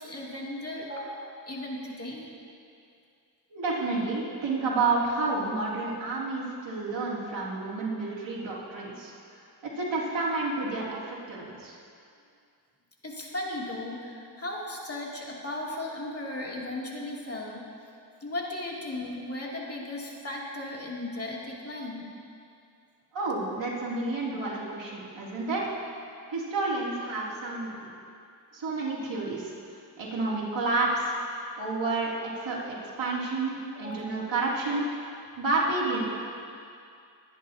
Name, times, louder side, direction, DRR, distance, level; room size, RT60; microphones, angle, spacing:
voice 1, 0.0-2.3 13.0-17.6 18.2-22.1 33.7-34.1, left 1 dB, 35° left, -4 dB, 2.7 m, -36 dB
voice 2, 3.5-9.1 9.6-11.8 23.1-25.6 26.3-27.9 28.5-29.5 30.0-31.1 31.6-34.8 35.4-36.0, right 3 dB, 90° right, -6 dB, 3.0 m, -30 dB
22.5 x 10.5 x 2.8 m, 2.4 s
cardioid pair, 70°, 43 cm